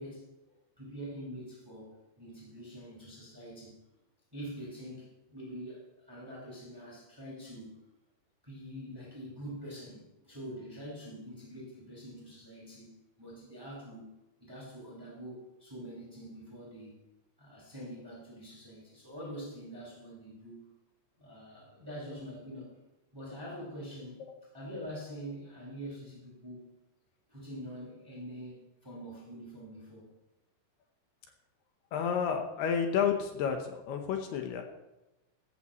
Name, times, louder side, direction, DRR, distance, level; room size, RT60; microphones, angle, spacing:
voice 1, 0.0-3.8 4.3-7.8 8.4-14.1 14.5-17.0 17.4-20.6 21.2-22.7 23.1-24.2 24.5-26.7 27.3-30.1, equal, 5° right, -6 dB, 5.1 m, -45 dB
voice 2, 31.9-34.6, left 7 dB, 70° left, 4 dB, 2.7 m, -30 dB
15.0 x 14.5 x 3.1 m, 1.0 s
omnidirectional pair, 5.4 m